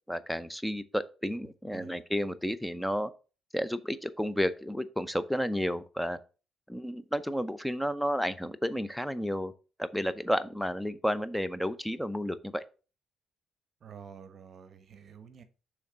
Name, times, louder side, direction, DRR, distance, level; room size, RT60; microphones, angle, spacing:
voice 1, 0.1-3.1 3.5-6.2 6.7-9.5 9.8-12.6, equal, 5° left, 0.6 m, -31 dB
voice 2, 13.8-15.4, right 7 dB, 55° right, 1.0 m, -49 dB
6.4 x 3.5 x 5.6 m
cardioid pair, 90°, 0 cm